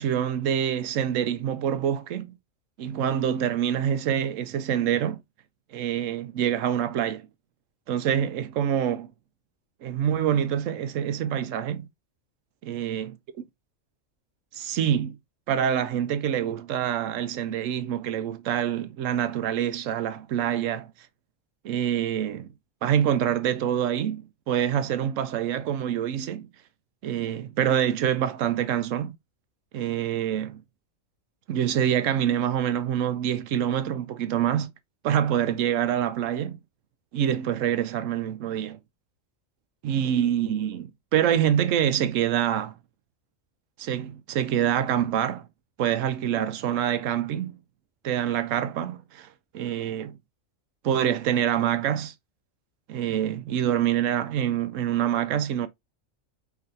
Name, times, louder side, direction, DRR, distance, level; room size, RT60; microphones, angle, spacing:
voice 1, 0.0-2.3 2.8-5.2 5.7-7.2 7.9-9.1 9.8-11.9 12.7-13.1 14.5-15.2 15.5-20.9 21.6-22.5 22.8-26.5 27.0-29.2 29.7-30.6 31.5-34.7 35.0-36.6 37.1-38.8 39.8-42.7 43.8-45.5 45.8-47.6 48.0-49.3 49.5-50.2 50.8-52.1 52.9-55.7, right 10 dB, 80° right, 1.0 m, -26 dB
4.8 x 3.3 x 2.6 m
omnidirectional pair, 1.3 m